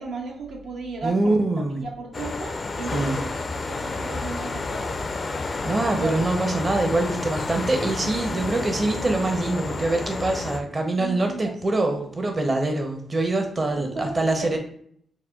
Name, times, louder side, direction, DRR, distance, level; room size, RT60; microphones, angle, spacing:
voice 1, 0.0-1.5 1.8-5.0 5.9-6.2 8.2-8.6 11.0-11.9 13.6-14.6, right 3 dB, 80° right, 0 dB, 0.6 m, -35 dB
voice 2, 1.0-1.9 2.9-3.2 5.6-14.6, right 2 dB, 35° right, 4 dB, 0.7 m, -24 dB
sound 1, 2.1-10.6, left 3 dB, 45° left, 0.4 m, -30 dB
5.3 x 2.2 x 2.3 m, 0.64 s
cardioid pair, 60°, 0 cm